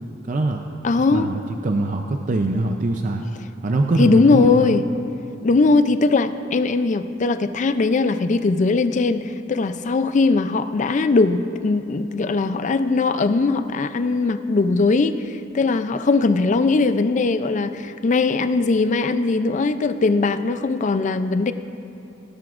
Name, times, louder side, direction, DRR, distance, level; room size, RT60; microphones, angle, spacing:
voice 1, 0.3-0.6 0.9-3.3 3.6-4.8, right 2 dB, 45° right, 4 dB, 0.5 m, -23 dB
voice 2, 0.8-1.3 4.0-4.8 5.4-21.5, left 3 dB, 40° left, 11 dB, 0.4 m, -20 dB
17.5 x 12.0 x 2.5 m, 2.7 s
head